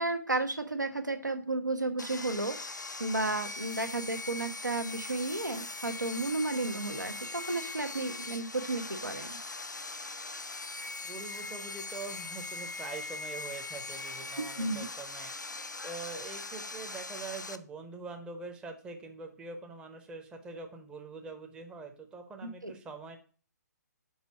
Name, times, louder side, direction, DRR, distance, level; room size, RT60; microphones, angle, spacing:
voice 1, 0.0-2.6 3.0-9.4 14.6-14.9 22.4-22.7, right 2 dB, 85° right, 7 dB, 1.0 m, -33 dB
Sawing, 2.0-17.6, left 3 dB, 85° left, 0.5 m, -41 dB
voice 2, 11.0-15.3 15.8-23.2, right 4 dB, 10° right, 4 dB, 0.7 m, -44 dB
5.5 x 3.8 x 5.9 m, 0.39 s
figure-of-eight pair, 130°, 10 cm